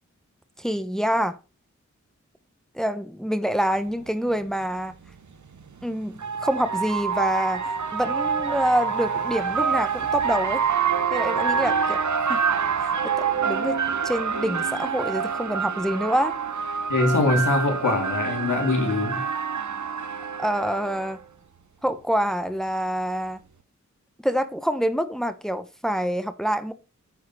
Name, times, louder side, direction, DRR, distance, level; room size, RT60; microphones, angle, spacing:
voice 1, 0.6-1.4 2.7-4.9 5.8-10.6 11.1-12.0 12.3-12.4 12.8-12.9 13.2-13.8 14.0-16.4 20.4-21.2 21.8-23.4 24.2-26.7, equal, ahead, 1.2 m, -26 dB
sound 1, 4.0-4.1 5.5-21.1, right 6 dB, 70° right, 1.1 m, -26 dB
voice 2, 16.9-19.2, left 2 dB, 80° left, 2.7 m, -23 dB
9.7 x 4.6 x 5.5 m
cardioid pair, 50°, 30 cm